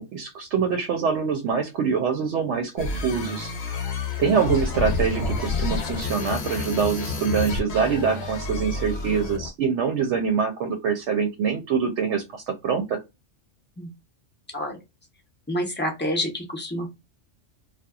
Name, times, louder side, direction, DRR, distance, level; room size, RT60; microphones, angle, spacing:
voice 1, 0.0-3.9 4.2-13.0, right 6 dB, 75° right, 5 dB, 0.9 m, -25 dB
sound 1, 2.8-9.5, left 3 dB, 65° left, 1.0 m, -29 dB
voice 2, 15.5-16.9, equal, 10° left, 1 dB, 0.6 m, -28 dB
2.8 x 2.2 x 2.3 m, 0.23 s
omnidirectional pair, 1.2 m